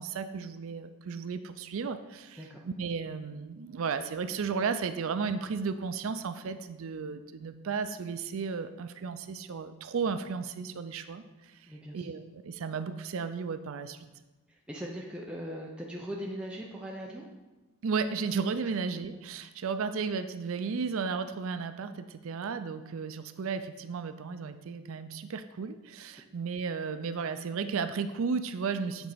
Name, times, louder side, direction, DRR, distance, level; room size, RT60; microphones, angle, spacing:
voice 1, 0.0-14.0 17.8-29.1, right 5 dB, 65° right, 10 dB, 0.4 m, -34 dB
voice 2, 11.7-12.1 14.5-17.3, equal, 5° right, -3 dB, 0.5 m, -40 dB
8.1 x 4.1 x 4.9 m, 1.1 s
head